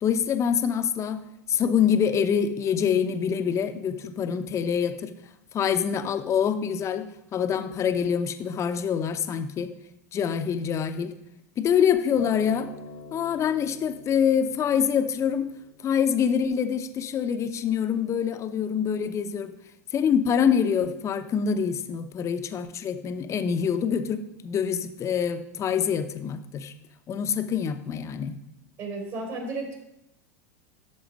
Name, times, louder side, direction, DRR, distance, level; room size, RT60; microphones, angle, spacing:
voice 1, 0.0-5.1 5.5-9.7 10.1-11.1 11.6-12.7 13.1-15.5 15.8-19.5 19.9-26.7 27.1-28.4, left 7 dB, 35° left, 9 dB, 0.8 m, -25 dB
Acoustic guitar, 12.2-16.5 17.3-17.4, left 5 dB, 80° left, 1.4 m, -44 dB
voice 2, 28.8-29.7, right 3 dB, 50° right, 1 dB, 3.4 m, -33 dB
11.5 x 4.0 x 5.2 m, 0.81 s
hypercardioid pair, 95°, 9 cm